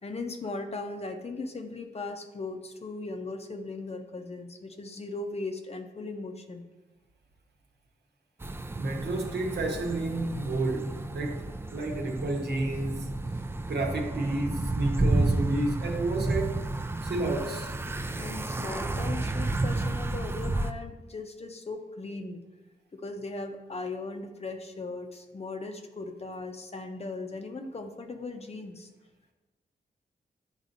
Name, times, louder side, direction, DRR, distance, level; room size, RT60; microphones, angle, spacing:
voice 1, 0.0-6.6 18.1-22.4 22.9-28.9, left 3 dB, 40° left, 0.7 m, -38 dB
sound 1, 8.4-20.7, right 2 dB, 15° right, 0.3 m, -31 dB
voice 2, 8.8-13.1 13.7-16.6 17.0-17.8, right 2 dB, 75° right, 1.0 m, -31 dB
9.9 x 4.0 x 2.6 m
cardioid pair, 70°, 17 cm